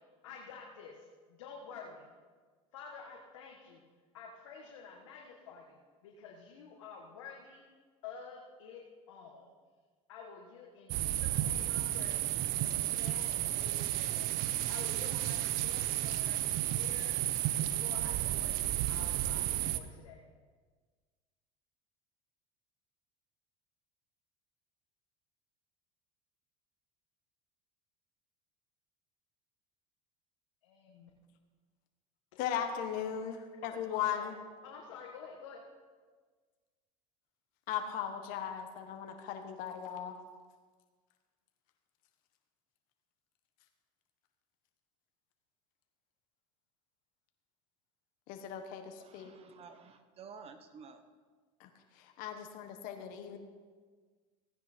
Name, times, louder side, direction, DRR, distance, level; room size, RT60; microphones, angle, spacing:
voice 1, 0.2-2.1 2.7-3.9 4.1-5.8 6.0-7.6 8.0-8.8 9.1-9.5 10.1-12.2 12.6-17.1 17.6-20.2 30.6-31.1 32.3-32.6 34.1-34.3 34.6-35.6, left 5 dB, 85° left, 0 dB, 1.5 m, -50 dB
sound 1, 10.9-19.8, right 13 dB, 65° right, 0.8 m, -32 dB
voice 2, 32.4-34.4 37.7-40.1 48.3-49.3 51.6-53.4, left 9 dB, 60° left, 5 dB, 1.4 m, -38 dB
voice 3, 49.0-51.0, right 5 dB, 40° right, 9 dB, 1.0 m, -52 dB
15.5 x 9.6 x 4.4 m, 1.5 s
supercardioid pair, 105°, 16 cm